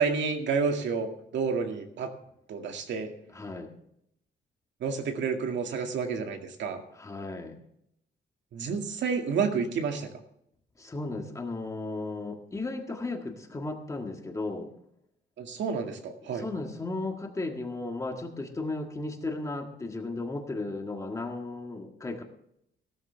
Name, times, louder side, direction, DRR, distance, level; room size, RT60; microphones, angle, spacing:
voice 1, 0.0-2.1 2.5-3.1 4.8-6.8 8.5-10.1 15.4-16.4, right 5 dB, 75° right, 4 dB, 2.1 m, -30 dB
voice 2, 3.3-3.7 6.9-7.6 10.8-14.7 16.2-22.2, left 2 dB, 15° left, 3 dB, 1.7 m, -35 dB
16.0 x 13.5 x 3.4 m, 0.74 s
wide cardioid pair, 175°, 19 cm